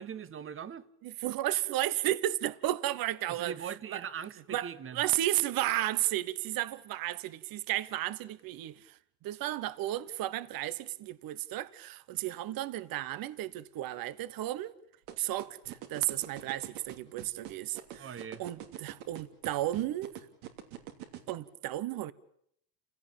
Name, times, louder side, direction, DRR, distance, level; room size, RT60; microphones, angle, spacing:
voice 1, 0.0-0.8 3.3-5.0 18.0-18.4, right 8 dB, 25° right, 1.2 m, -41 dB
voice 2, 1.0-3.5 3.9-4.0 4.5-14.7 15.2-20.1 21.3-22.1, right 14 dB, 45° right, 1.2 m, -33 dB
sound 1, 15.1-21.3, right 12 dB, 75° right, 3.1 m, -43 dB
29.5 x 17.0 x 8.8 m
supercardioid pair, 120°, 48 cm